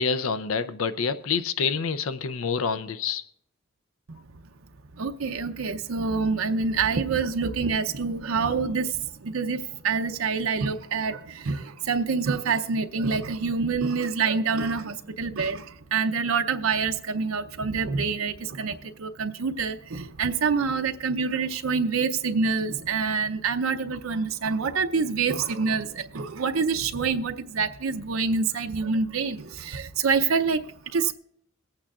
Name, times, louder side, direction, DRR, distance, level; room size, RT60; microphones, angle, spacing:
voice 1, 0.0-3.2, left 5 dB, 90° left, 12 dB, 0.6 m, -27 dB
voice 2, 5.0-31.1, right 5 dB, 85° right, 6 dB, 0.6 m, -26 dB
23.5 x 8.7 x 2.4 m, 0.71 s
head